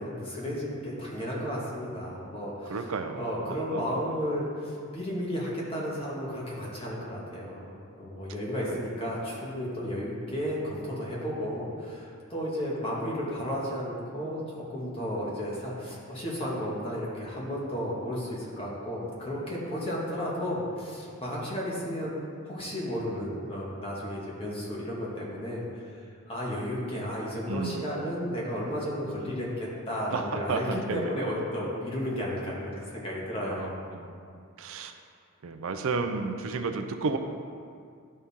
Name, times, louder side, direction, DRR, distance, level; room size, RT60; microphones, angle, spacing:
voice 1, 0.0-2.8 3.1-22.2 22.4-25.8 26.3-33.7, equal, 25° left, -5 dB, 1.7 m, -33 dB
voice 2, 2.7-3.8 27.5-27.9 30.1-31.1 33.5-34.2 34.6-34.9 35.4-37.2, right 4 dB, 70° right, 6 dB, 0.5 m, -32 dB
11.5 x 4.3 x 3.6 m, 2.2 s
head